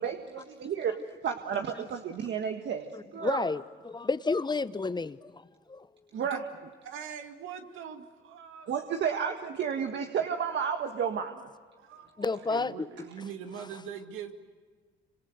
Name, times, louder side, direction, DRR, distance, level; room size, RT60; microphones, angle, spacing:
voice 1, 0.0-3.4 6.1-6.4 8.7-11.5 11.9-12.3, right 7 dB, 65° right, 5 dB, 1.6 m, -32 dB
voice 2, 2.9-5.4 5.7-5.9 12.2-12.9, left 3 dB, 20° left, 14 dB, 0.9 m, -31 dB
voice 3, 6.8-8.7 11.9-12.1 12.3-14.3, right 8 dB, 85° right, 6 dB, 2.4 m, -42 dB
27.5 x 25.5 x 8.0 m, 1.5 s
cardioid pair, 90°, 20 cm